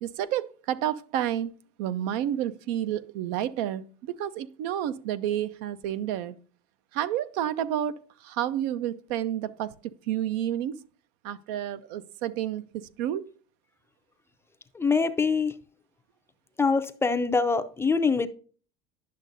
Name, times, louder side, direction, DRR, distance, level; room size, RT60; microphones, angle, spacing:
voice 1, 0.0-1.5 1.8-6.3 6.9-9.8 10.1-10.8 11.2-13.3, right 11 dB, 80° right, 0.6 m, -30 dB
voice 2, 14.7-15.5 16.6-18.3, left 4 dB, 10° left, 0.4 m, -24 dB
10.5 x 6.4 x 2.6 m
cardioid pair, 140°, 21 cm